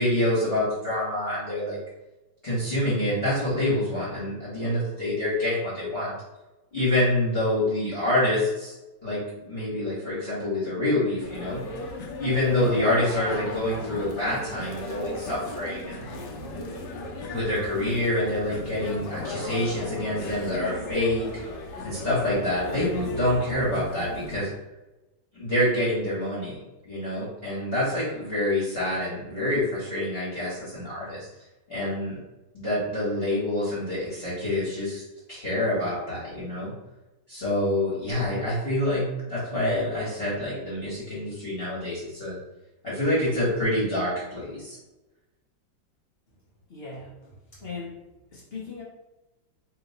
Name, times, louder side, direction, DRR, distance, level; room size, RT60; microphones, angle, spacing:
voice 1, 0.0-1.8 2.4-6.1 6.7-8.8 9.0-11.6 12.2-16.0 17.3-21.3 21.8-24.5 25.3-31.3 31.7-32.2 32.5-35.0 35.3-36.7 37.3-42.3 42.8-44.8, left 1 dB, 35° left, -10 dB, 1.3 m, -27 dB
sound 1, 11.2-24.4, left 1 dB, 70° left, 1.2 m, -36 dB
voice 2, 46.7-48.0 48.3-48.8, left 4 dB, 55° left, -6 dB, 0.7 m, -39 dB
3.0 x 2.9 x 4.0 m, 1.0 s
omnidirectional pair, 2.0 m